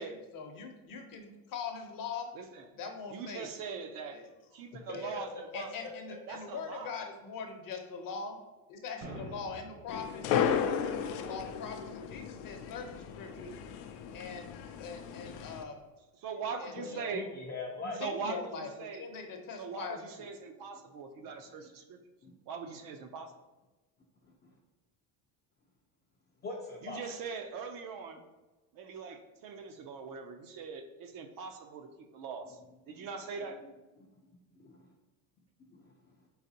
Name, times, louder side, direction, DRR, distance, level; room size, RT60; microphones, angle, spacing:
voice 1, 0.0-2.3 2.7-3.5 4.1-4.3 4.9-5.1 5.5-8.4 8.7-13.5 14.1-14.5 14.8-15.8 16.6-17.2 17.8-20.3, left 5 dB, 45° left, 4 dB, 0.8 m, -42 dB
voice 2, 2.3-2.7 3.1-4.2 4.5-5.7 6.3-7.0 16.2-17.3 18.0-19.1 19.6-22.0 22.5-23.3 26.8-28.2 28.7-32.6 32.9-33.6, right 5 dB, 50° right, 7 dB, 0.5 m, -41 dB
voice 3, 4.7-5.4 16.8-18.0 22.2-22.3 24.4-24.5 26.4-27.0 33.0-33.1 34.6-34.9 35.7-35.8, left 3 dB, 25° left, -1 dB, 0.4 m, -42 dB
sound 1, 9.0-10.0, right 1 dB, 65° right, 1.2 m, -45 dB
sound 2, 9.9-15.6, left 8 dB, 90° left, 0.5 m, -34 dB
4.2 x 4.0 x 2.7 m, 1.2 s
supercardioid pair, 115°, 46 cm